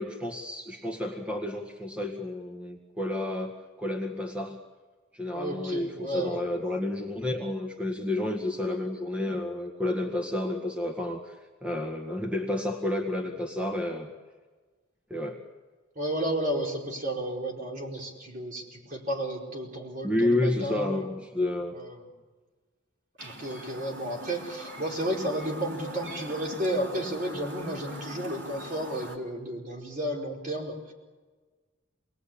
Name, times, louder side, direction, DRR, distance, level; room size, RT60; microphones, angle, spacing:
voice 1, 0.0-4.6 5.1-11.3 11.6-14.1 15.1-15.4 20.0-21.7, left 1 dB, 5° right, 2 dB, 1.9 m, -30 dB
voice 2, 5.3-6.4 15.9-21.1 21.7-22.1 23.2-30.9, right 1 dB, 45° right, -1 dB, 4.6 m, -32 dB
Chirp tweet, 23.2-29.2, right 1 dB, 70° right, 3.8 m, -42 dB
28.0 x 20.5 x 8.8 m, 1.4 s
head